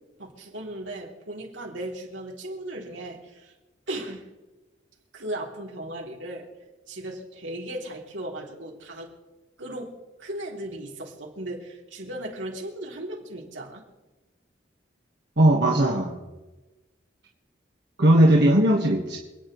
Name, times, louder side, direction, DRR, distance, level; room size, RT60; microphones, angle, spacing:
voice 1, 0.2-3.5 3.9-4.3 5.1-6.5 6.9-9.1 9.6-13.8, right 1 dB, 85° right, -2 dB, 3.3 m, -36 dB
voice 2, 15.4-16.2 18.0-19.2, right 1 dB, 65° right, -2 dB, 1.7 m, -18 dB
28.0 x 9.9 x 3.3 m, 1.1 s
head